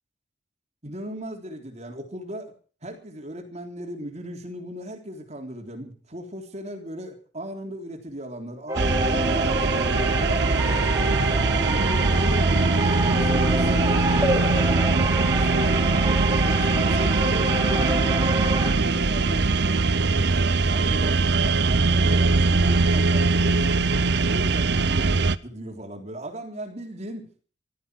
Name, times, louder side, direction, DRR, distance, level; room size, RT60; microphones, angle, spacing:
voice 1, 0.8-2.5 2.8-10.3 11.7-14.0 15.3-18.0 18.6-19.8 20.7-23.7 24.3-27.4, right 1 dB, 35° right, 3 dB, 3.5 m, -37 dB
sound 1, 8.7-18.7, right 1 dB, 15° right, 4.5 m, -27 dB
sound 2, 8.8-25.4, right 3 dB, 60° right, 0.8 m, -22 dB
15.5 x 14.0 x 6.3 m, 0.40 s
head